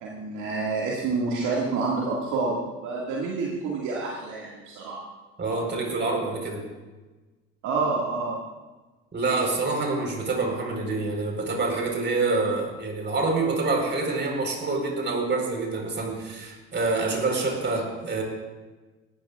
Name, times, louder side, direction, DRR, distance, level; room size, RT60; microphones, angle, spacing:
voice 1, 0.0-5.0 7.6-8.4, right 3 dB, 60° right, -4 dB, 2.2 m, -28 dB
voice 2, 5.4-6.6 9.1-18.2, right 3 dB, 30° right, 1 dB, 4.5 m, -26 dB
18.5 x 13.5 x 2.5 m, 1.2 s
hypercardioid pair, 65°, 34 cm